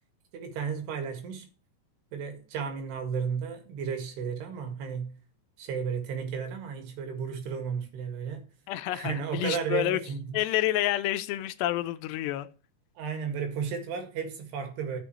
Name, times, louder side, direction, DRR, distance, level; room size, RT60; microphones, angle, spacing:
voice 1, 0.3-1.5 2.1-5.2 5.6-8.5 8.9-10.4 13.0-15.0, right 6 dB, 75° right, 3.9 m, -33 dB
voice 2, 8.7-10.0 10.3-12.5, left 14 dB, 85° left, 2.9 m, -29 dB
13.5 x 7.2 x 3.1 m
omnidirectional pair, 4.8 m